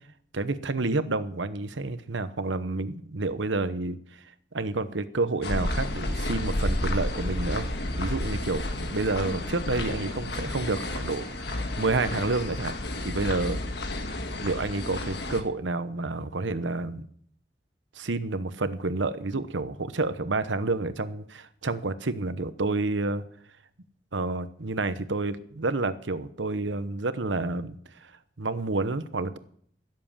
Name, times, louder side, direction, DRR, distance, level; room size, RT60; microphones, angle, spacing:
voice 1, 0.3-4.2 4.5-7.7 7.9-12.7 13.0-13.6 14.4-17.1 17.9-23.2 24.1-27.7 28.0-28.1 28.4-29.4, right 3 dB, 90° right, 13 dB, 1.0 m, -29 dB
sound 1, 5.4-15.4, left 1 dB, 65° left, 1.6 m, -31 dB
16.5 x 7.7 x 7.3 m, 0.62 s
head